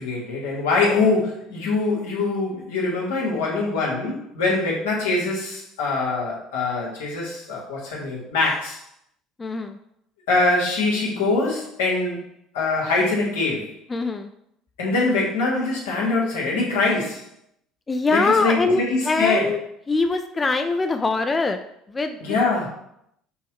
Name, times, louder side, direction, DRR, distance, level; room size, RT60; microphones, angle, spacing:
voice 1, 0.0-8.8 10.3-12.2 12.5-13.7 14.8-17.2 18.1-19.5 22.2-22.7, left 3 dB, 90° left, -3 dB, 1.3 m, -23 dB
voice 2, 9.4-9.8 13.9-14.3 17.9-19.6 19.9-21.6 21.9-22.4, left 3 dB, 25° left, 6 dB, 0.3 m, -23 dB
6.2 x 2.2 x 3.0 m, 0.74 s
supercardioid pair, 80°, 0 cm